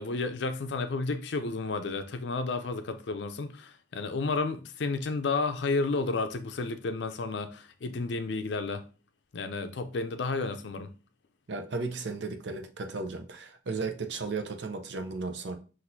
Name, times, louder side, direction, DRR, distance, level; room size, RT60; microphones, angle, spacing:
voice 1, 0.0-8.8 9.3-10.9, left 3 dB, 70° left, 0.5 m, -31 dB
voice 2, 11.5-15.6, right 3 dB, 70° right, 0.6 m, -35 dB
5.9 x 2.6 x 2.6 m
head